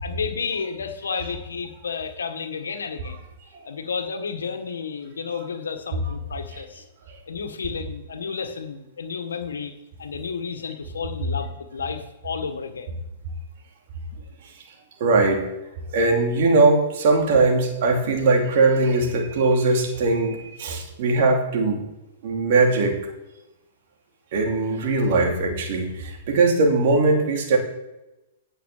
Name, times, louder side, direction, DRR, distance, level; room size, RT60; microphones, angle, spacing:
voice 1, 0.0-3.2 3.6-6.8 7.3-9.7 10.0-13.0, left 5 dB, 85° left, 7 dB, 1.6 m, -31 dB
voice 2, 15.0-15.4 15.9-21.9 22.2-23.0 24.3-27.6, right 3 dB, 55° right, 2 dB, 2.7 m, -20 dB
9.6 x 6.8 x 6.7 m, 0.99 s
hypercardioid pair, 125°, 0 cm